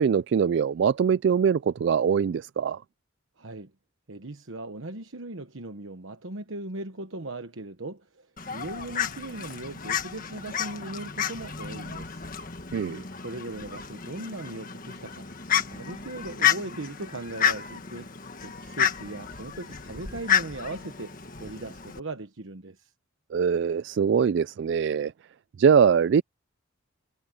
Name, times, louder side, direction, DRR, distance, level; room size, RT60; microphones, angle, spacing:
voice 1, 0.0-2.8 12.7-13.0 23.3-25.1 25.6-26.2, right 7 dB, 60° right, 0.3 m, -22 dB
voice 2, 3.4-3.7 4.1-12.2 13.2-15.3 15.7-18.1 18.4-22.9, right 2 dB, 80° right, 1.2 m, -38 dB
Fowl, 8.4-22.0, left 8 dB, 45° left, 1.6 m, -31 dB
head